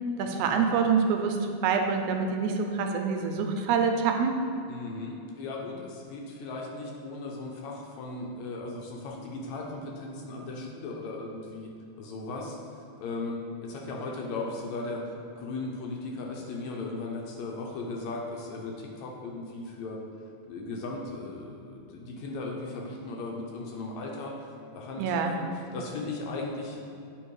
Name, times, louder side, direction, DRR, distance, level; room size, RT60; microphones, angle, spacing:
voice 1, 0.2-4.3 25.0-25.3, right 5 dB, 85° right, 4 dB, 2.0 m, -26 dB
voice 2, 4.7-11.7 12.0-15.0 15.4-20.0 20.5-26.8, left 3 dB, 75° left, -1 dB, 2.0 m, -37 dB
8.9 x 3.6 x 4.7 m, 2.6 s
omnidirectional pair, 3.4 m